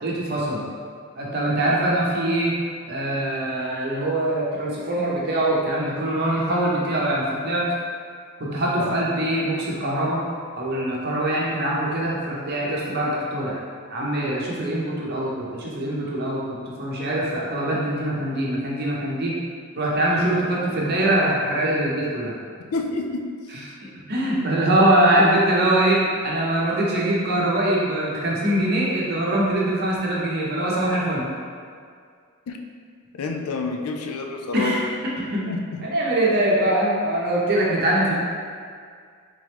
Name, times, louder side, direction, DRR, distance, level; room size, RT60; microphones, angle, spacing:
voice 1, 0.0-0.6 1.2-2.5 2.9-7.7 8.4-10.2 10.6-13.6 13.9-19.3 19.8-22.3 23.5-23.6 24.1-31.3 34.5-35.4 35.8-38.2, right 1 dB, 45° right, -5 dB, 0.7 m, -23 dB
voice 2, 22.7-23.2 32.5-32.6 33.1-34.9 35.5-35.8, left 3 dB, 75° left, 3 dB, 0.4 m, -28 dB
3.6 x 3.0 x 3.3 m, 2.1 s
head